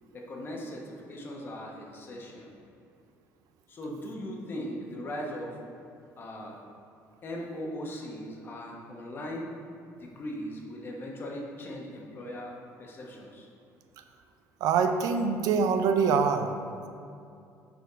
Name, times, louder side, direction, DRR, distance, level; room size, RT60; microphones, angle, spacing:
voice 1, 0.1-2.5 3.7-5.6 6.2-6.6 7.2-9.5 10.0-13.5, equal, 35° left, -1 dB, 1.1 m, -39 dB
voice 2, 14.6-16.5, right 5 dB, 70° right, 7 dB, 0.5 m, -24 dB
6.7 x 4.1 x 5.0 m, 2.5 s
cardioid pair, 130°, 6 cm